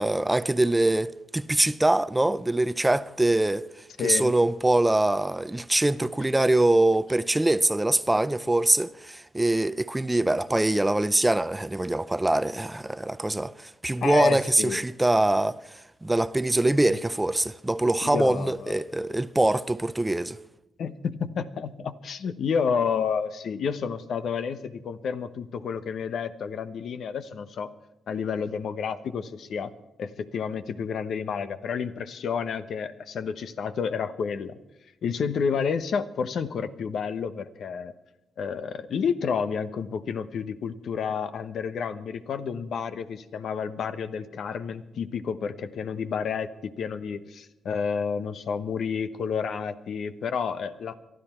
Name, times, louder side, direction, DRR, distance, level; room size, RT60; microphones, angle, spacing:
voice 1, 0.0-3.7 4.0-15.6 16.0-20.4, right 1 dB, 15° right, 0.6 m, -23 dB
voice 2, 4.0-4.4 14.0-14.8 18.0-18.8 20.8-27.7 28.1-29.7 30.0-34.5 35.0-37.9 38.4-50.9, left 6 dB, 70° left, 1.1 m, -30 dB
23.0 x 13.0 x 4.5 m
cardioid pair, 75°, 0 cm